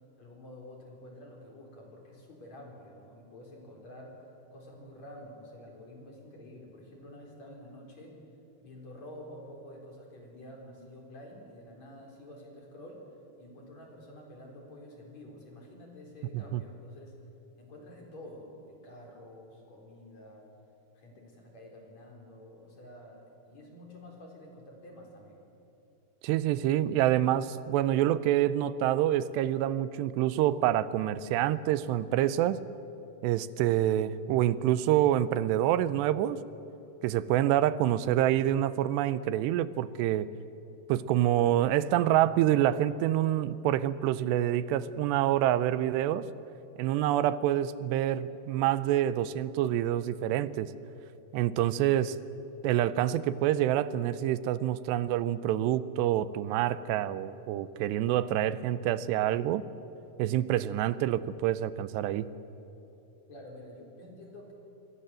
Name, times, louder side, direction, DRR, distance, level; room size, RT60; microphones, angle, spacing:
voice 1, 0.2-4.2 4.5-8.2 8.6-17.1 17.6-20.5 21.0-25.4 63.3-64.5, left 1 dB, 40° left, 0 dB, 5.2 m, -49 dB
voice 2, 26.2-32.6 33.2-36.4 37.0-40.3 40.9-46.3 46.8-50.7 51.3-52.2 52.6-59.6 60.2-62.3, right 12 dB, 85° right, 15 dB, 2.8 m, -27 dB
28.0 x 23.0 x 7.7 m, 2.9 s
omnidirectional pair, 4.9 m